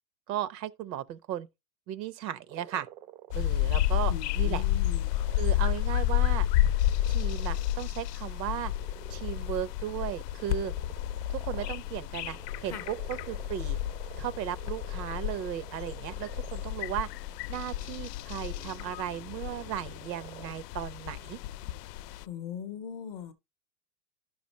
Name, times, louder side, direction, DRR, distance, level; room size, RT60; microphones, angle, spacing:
voice 1, 0.3-1.5 1.9-2.9 3.3-4.6 5.4-6.5 7.1-8.7 9.1-10.7 11.3-13.8 14.2-17.1 17.5-21.4, right 11 dB, 90° right, 1.0 m, -36 dB
sound 1, 2.5-3.5 3.8-3.9 4.9-7.7 8.3-20.5, right 12 dB, 35° right, 0.4 m, -51 dB
sound 2, 3.3-22.2, left 13 dB, 75° left, 0.6 m, -31 dB
voice 2, 4.1-5.2 12.7-12.9 22.2-23.3, left 8 dB, 25° left, 0.5 m, -40 dB
11.0 x 6.1 x 2.8 m
supercardioid pair, 165°, 49 cm